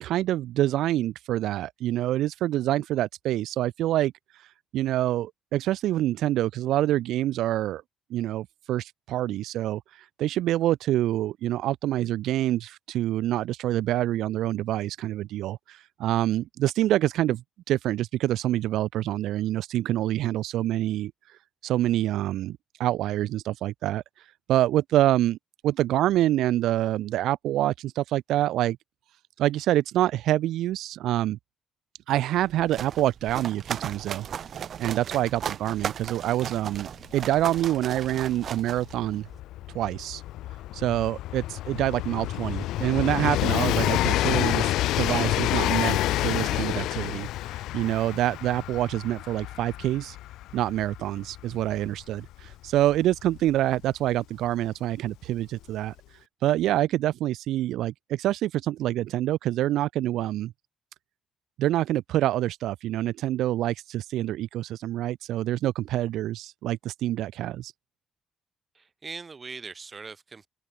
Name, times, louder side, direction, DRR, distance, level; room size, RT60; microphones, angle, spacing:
voice 1, 0.0-7.8 8.1-25.4 25.6-28.8 29.4-31.4 32.1-34.3 34.8-39.3 39.7-40.2 40.7-50.2 50.5-55.9 56.4-60.5 61.6-67.7, right 14 dB, 85° right, 0.8 m, -26 dB
sound 1, 32.4-39.4, right 8 dB, 60° right, 1.3 m, -37 dB
Train, 37.2-37.3 37.5-54.1 55.1-55.2, left 15 dB, 90° left, 0.7 m, -29 dB
voice 2, 68.7-70.5, right 4 dB, 35° right, 7.2 m, -41 dB
open air
cardioid pair, 90°, 0 cm